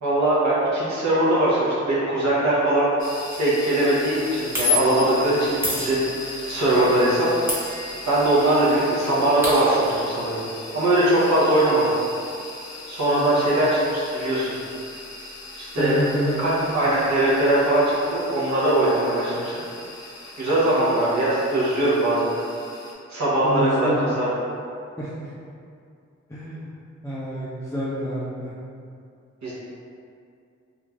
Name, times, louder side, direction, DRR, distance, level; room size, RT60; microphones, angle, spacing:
voice 1, 0.0-3.1 3.4-7.3 8.1-10.4 10.7-11.9 12.9-14.6 15.6-16.0 16.4-19.5 20.4-22.3 23.1-24.3 29.4-29.5, right 1 dB, 70° right, -8 dB, 0.8 m, -21 dB
sound 1, 3.0-22.9, left 2 dB, 70° left, 0.6 m, -39 dB
sound 2, 3.3-3.5 4.5-5.1 5.6-6.5 7.5-8.4 8.7-8.8 9.0-9.9, left 3 dB, 10° right, 0.8 m, -27 dB
voice 2, 15.8-16.7 23.4-24.0 25.0-25.1 26.3-26.7 27.0-28.5, equal, 10° left, -7 dB, 0.4 m, -27 dB
2.4 x 2.4 x 3.2 m, 2.4 s
cardioid pair, 80°, 29 cm